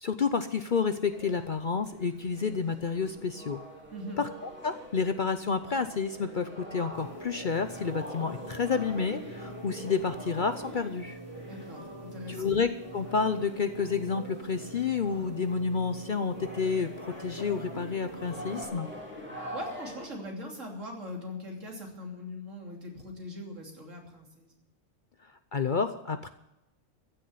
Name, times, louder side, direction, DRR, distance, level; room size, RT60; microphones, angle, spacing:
voice 1, 0.0-3.6 4.2-11.2 12.3-16.9 17.2-18.9 25.5-26.3, left 5 dB, 45° left, 10 dB, 0.7 m, -30 dB
sound 1, 1.1-20.1, equal, 10° right, 3.2 m, -45 dB
voice 2, 3.9-4.2 11.5-12.5 19.5-24.5, left 1 dB, 70° right, 0 dB, 3.5 m, -41 dB
sound 2, 6.9-18.6, right 2 dB, 20° left, 1.4 m, -45 dB
15.0 x 7.1 x 9.5 m, 0.90 s
omnidirectional pair, 1.4 m